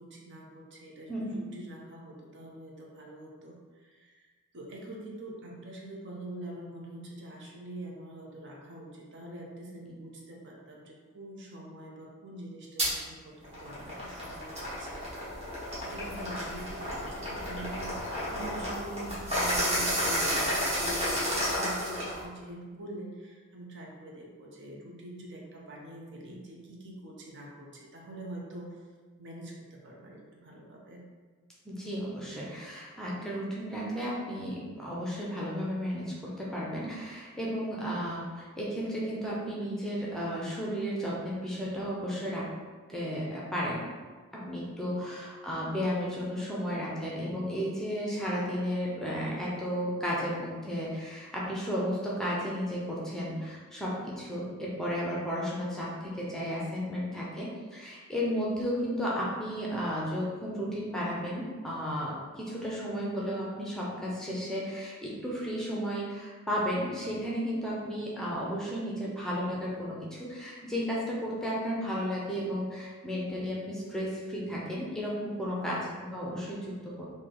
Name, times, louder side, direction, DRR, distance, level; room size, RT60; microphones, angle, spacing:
voice 1, 0.0-15.4 15.8-28.8 29.2-31.0 44.9-45.1 75.5-75.8, right 1 dB, 55° right, -2 dB, 0.7 m, -45 dB
voice 2, 1.1-1.5 31.6-42.5 42.9-43.9 44.3-75.8 76.1-76.7 77.0-77.1, equal, ahead, -6 dB, 0.6 m, -33 dB
sound 1, 12.8-12.9 13.4-22.2, equal, 30° right, 1.3 m, -31 dB
3.2 x 2.7 x 3.8 m, 1.4 s
head